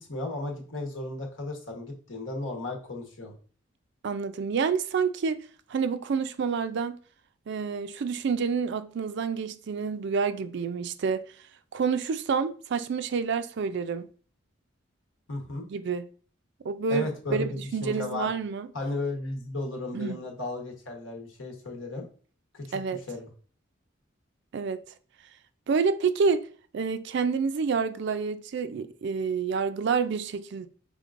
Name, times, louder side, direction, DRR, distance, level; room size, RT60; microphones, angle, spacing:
voice 1, 0.1-3.3 15.3-15.7 16.9-18.3 18.7-22.1 22.5-23.3, left 2 dB, 80° left, 1.1 m, -34 dB
voice 2, 4.0-5.4 5.7-7.0 7.5-11.2 11.7-14.0 15.7-16.1 16.6-18.7 19.9-20.2 22.7-23.0 24.5-24.8 25.7-26.4 26.7-30.7, right 5 dB, 60° right, 0.4 m, -28 dB
5.2 x 3.7 x 2.5 m
head